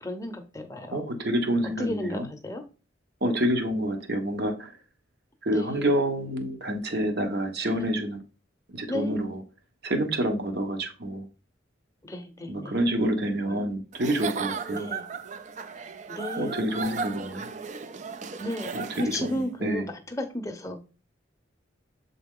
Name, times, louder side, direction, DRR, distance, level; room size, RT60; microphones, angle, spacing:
voice 1, 0.0-1.0 1.8-2.6 5.5-5.9 7.7-7.9 8.9-9.2 12.0-12.8 13.4-13.6 14.8-15.0 16.1-16.6 18.4-20.8, left 1 dB, 15° left, 0.7 m, -34 dB
voice 2, 0.9-2.2 3.2-4.7 5.4-8.2 8.7-9.4 9.8-11.2 12.5-14.9 16.4-17.5 18.7-19.9, right 1 dB, 55° right, 1.0 m, -28 dB
Giggle / Chuckle chortle, 13.9-19.4, right 5 dB, 35° right, 0.4 m, -36 dB
7.4 x 3.8 x 3.7 m
head